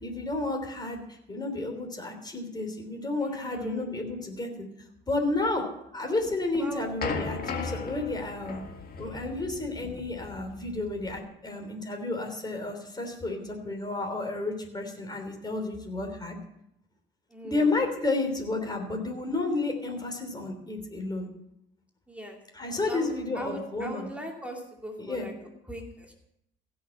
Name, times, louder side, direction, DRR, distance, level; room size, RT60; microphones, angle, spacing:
voice 1, 0.0-4.7 5.1-5.7 5.9-8.6 9.0-16.4 17.4-21.3 22.5-24.1 25.0-25.3, left 2 dB, 20° left, 3 dB, 3.3 m, -31 dB
voice 2, 3.2-3.9 6.6-6.8 17.3-18.1 22.1-22.4 22.9-26.1, equal, 5° right, 0 dB, 2.5 m, -40 dB
sound 1, 6.2-11.2, left 4 dB, 50° left, 1.8 m, -37 dB
16.0 x 6.3 x 7.1 m, 0.77 s
cardioid pair, 90°, 20 cm